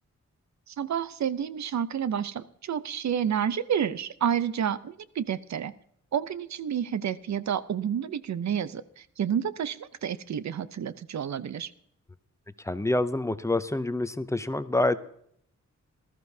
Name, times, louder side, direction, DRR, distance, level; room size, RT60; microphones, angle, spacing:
voice 1, 0.7-5.7 6.1-11.7, right 8 dB, 70° right, 15 dB, 0.6 m, -30 dB
voice 2, 12.6-15.0, left 2 dB, 10° left, 13 dB, 0.4 m, -27 dB
19.0 x 13.5 x 2.7 m, 0.70 s
wide cardioid pair, 170°, 29 cm